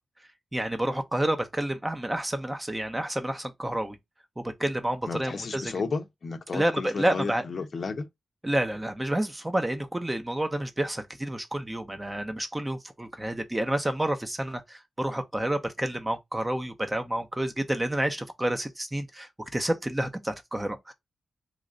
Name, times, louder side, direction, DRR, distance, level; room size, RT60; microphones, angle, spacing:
voice 1, 0.5-4.0 4.4-5.7 6.5-7.4 8.4-20.9, right 1 dB, 15° right, 0.7 m, -29 dB
voice 2, 5.1-8.1, left 4 dB, 55° left, 0.6 m, -33 dB
3.2 x 2.4 x 3.8 m
cardioid pair, 85°, 0 cm